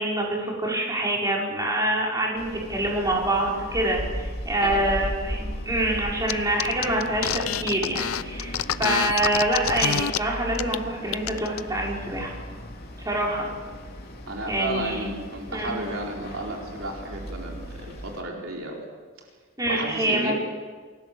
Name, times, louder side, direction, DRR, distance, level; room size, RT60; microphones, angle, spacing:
voice 1, 0.0-12.3 13.0-13.5 14.5-15.1 15.5-15.8 19.6-20.3, right 1 dB, 15° right, -3 dB, 5.9 m, -26 dB
sound 1, 2.3-18.2, equal, 50° left, 3.6 m, -37 dB
sound 2, 6.3-6.4 6.6-10.2 10.5-10.8 11.1-11.6, left 9 dB, 90° left, 0.7 m, -27 dB
voice 2, 14.3-18.8 19.7-20.3, right 2 dB, 70° right, -1 dB, 4.5 m, -33 dB
28.5 x 20.0 x 7.4 m, 1.6 s
head